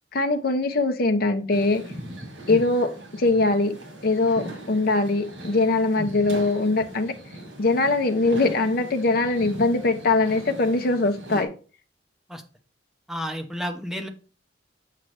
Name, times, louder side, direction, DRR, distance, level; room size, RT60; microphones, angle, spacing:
voice 1, 0.1-1.8 2.5-3.8 4.0-7.1 7.6-11.5, left 3 dB, 55° left, 0.7 m, -22 dB
sound 1, 1.5-11.5, right 1 dB, 90° right, 2.3 m, -39 dB
voice 2, 13.1-14.1, equal, 5° right, 0.9 m, -31 dB
7.6 x 5.8 x 3.2 m
head